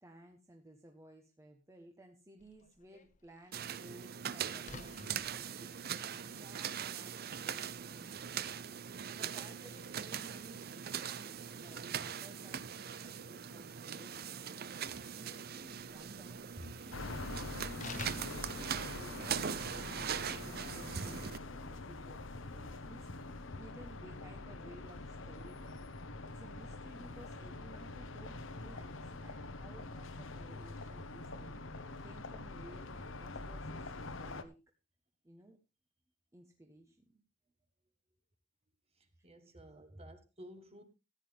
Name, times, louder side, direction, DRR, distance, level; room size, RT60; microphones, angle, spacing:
voice 1, 0.0-8.6 9.0-14.7 15.2-16.5 16.8-19.4 19.9-26.0 26.3-34.6 35.2-35.6 36.3-37.2 39.2-39.6 39.9-40.0, right 1 dB, 15° right, 1.2 m, -57 dB
Slam, 2.4-19.5, left 4 dB, 40° left, 0.9 m, -56 dB
sound 1, 3.5-21.4, right 8 dB, 50° right, 0.6 m, -41 dB
voice 2, 16.6-16.9 39.0-40.8, equal, 30° right, 1.8 m, -53 dB
sound 2, 16.9-34.4, left 2 dB, 75° left, 1.1 m, -45 dB
14.5 x 9.9 x 3.5 m
head